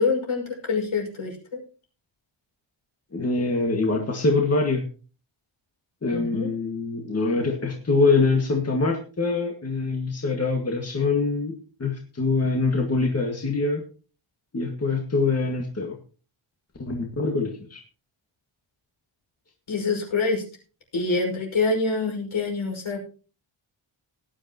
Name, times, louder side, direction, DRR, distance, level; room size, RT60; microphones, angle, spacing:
voice 1, 0.0-1.6 6.1-6.5 19.7-20.4 20.9-23.0, left 4 dB, 70° left, 1 dB, 6.0 m, -26 dB
voice 2, 3.1-4.8 6.0-13.8 14.5-16.0 16.8-17.8, left 3 dB, 30° left, 2 dB, 1.9 m, -24 dB
18.0 x 10.5 x 3.0 m, 0.37 s
wide cardioid pair, 125°, 50 cm